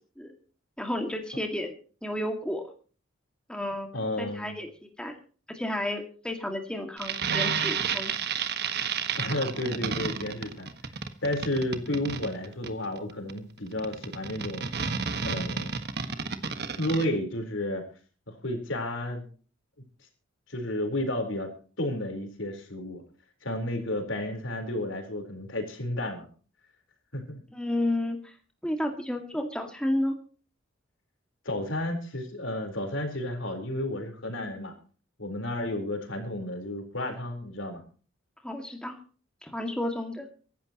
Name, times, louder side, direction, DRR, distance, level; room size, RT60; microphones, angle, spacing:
voice 1, 0.8-2.7 3.5-3.9 4.2-5.1 5.5-8.1 27.5-28.4 28.6-30.1 38.4-39.0 39.4-40.3, left 1 dB, 5° left, 3 dB, 2.1 m, -32 dB
voice 2, 3.9-4.6 9.2-10.7 11.2-14.7 15.2-15.8 16.7-17.8 18.3-19.2 20.5-21.5 21.8-23.0 23.4-26.3 27.1-27.4 31.4-34.7 35.2-37.8, left 1 dB, 70° left, 5 dB, 4.2 m, -32 dB
sound 1, 7.0-17.0, right 6 dB, 55° right, 1.5 m, -31 dB
24.5 x 12.0 x 3.0 m, 0.39 s
head